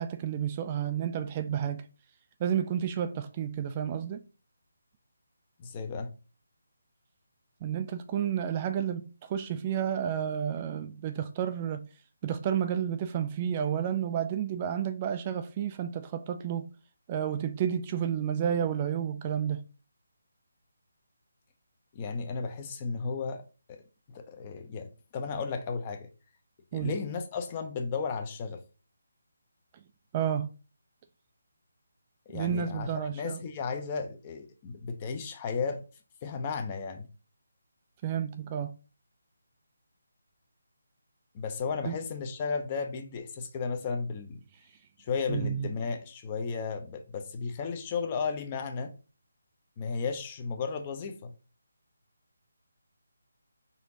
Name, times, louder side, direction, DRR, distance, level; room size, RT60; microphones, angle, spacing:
voice 1, 0.0-1.9 2.4-4.2 7.6-11.9 12.2-16.7 17.1-19.6 26.7-26.9 30.1-30.5 32.3-33.4 38.0-38.7 41.8-42.0 45.3-45.7, right 9 dB, 25° right, 0.3 m, -31 dB
voice 2, 5.6-6.1 21.9-23.4 23.7-23.8 24.1-26.1 26.7-28.6 32.3-35.8 36.2-37.1 41.3-44.4 45.0-48.9 49.8-51.3, left 5 dB, 25° left, 0.7 m, -34 dB
4.2 x 2.6 x 3.8 m
figure-of-eight pair, 155°, 0 cm